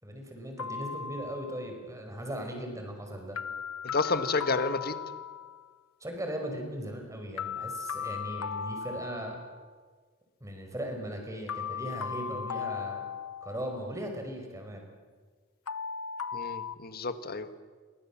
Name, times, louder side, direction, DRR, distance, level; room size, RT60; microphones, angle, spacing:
voice 1, 0.0-3.4 6.0-9.4 10.4-13.0 13.4-14.8, equal, 15° right, 3 dB, 5.4 m, -38 dB
sound 1, 0.6-1.7 3.4-5.7 7.4-9.7 11.5-13.8 15.7-16.7, left 6 dB, 85° left, 0.8 m, -37 dB
voice 2, 3.9-5.0 16.3-17.5, left 3 dB, 45° left, 10 dB, 1.6 m, -30 dB
28.5 x 24.0 x 7.4 m, 1.5 s
head